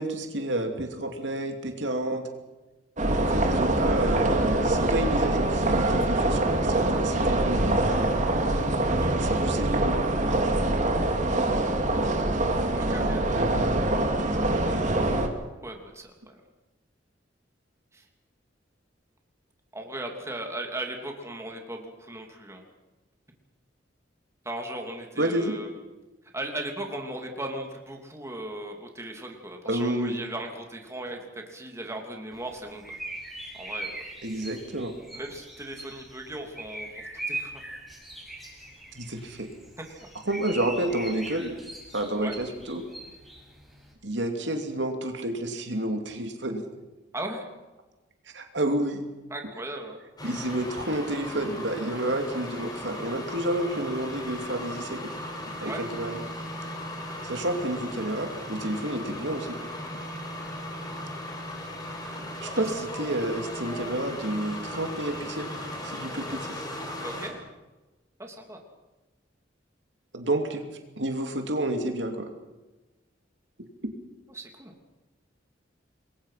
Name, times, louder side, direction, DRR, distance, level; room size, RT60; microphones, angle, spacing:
voice 1, 0.0-2.2 3.2-7.7 9.2-10.0 13.3-13.6 25.2-25.5 29.6-30.2 34.2-34.9 38.9-39.5 40.3-41.5 41.9-42.8 44.0-46.6 48.3-49.0 50.2-55.0 55.6-56.2 57.2-59.6 62.4-65.5 65.8-66.7 70.1-70.6 71.0-72.3, right 1 dB, 70° right, 4 dB, 2.9 m, -30 dB
sound 1, 3.0-15.3, right 1 dB, 40° right, 2.6 m, -24 dB
voice 2, 12.7-13.2 15.6-16.4 17.9-18.1 19.7-22.6 24.4-25.7 26.3-33.0 33.5-34.0 35.1-37.6 39.8-40.1 42.2-42.4 47.1-47.5 49.3-50.0 55.6-55.8 62.6-62.7 67.0-67.4 68.2-68.6 74.3-74.7, right 1 dB, 15° right, 2 dB, 3.0 m, -37 dB
sound 2, 32.3-43.9, right 1 dB, ahead, 7.0 m, -41 dB
sound 3, 50.2-67.3, left 1 dB, 20° left, 5.1 m, -37 dB
27.5 x 22.0 x 5.9 m, 1.1 s
head